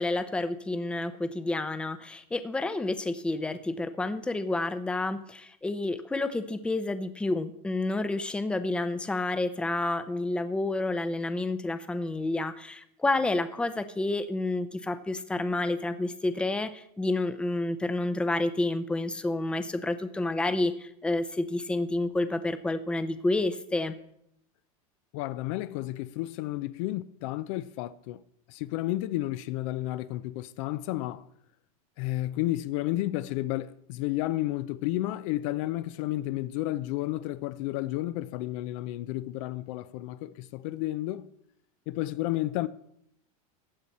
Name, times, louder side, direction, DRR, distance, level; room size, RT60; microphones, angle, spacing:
voice 1, 0.0-23.9, left 2 dB, 5° left, 0.6 m, -29 dB
voice 2, 25.1-28.2 28.5-31.2 32.0-41.3 41.9-42.7, left 16 dB, 60° left, 0.5 m, -32 dB
15.0 x 8.9 x 4.2 m
supercardioid pair, 130°, 19 cm